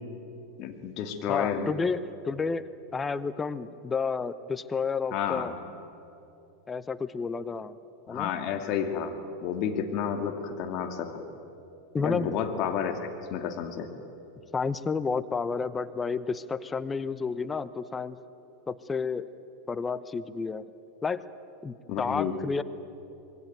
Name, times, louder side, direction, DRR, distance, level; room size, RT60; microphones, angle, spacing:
voice 1, 0.6-1.7 5.1-5.5 8.1-9.1 9.4-11.2 12.0-13.0 13.3-13.9 21.9-22.3, left 8 dB, 45° left, 6 dB, 2.6 m, -30 dB
voice 2, 1.3-5.5 6.7-7.8 8.1-8.3 11.9-12.3 14.5-18.2 18.7-19.3 19.7-20.6 21.0-21.2 21.6-22.6, left 5 dB, 20° left, 15 dB, 0.9 m, -31 dB
26.0 x 21.0 x 9.2 m, 2.9 s
figure-of-eight pair, 85°, 0 cm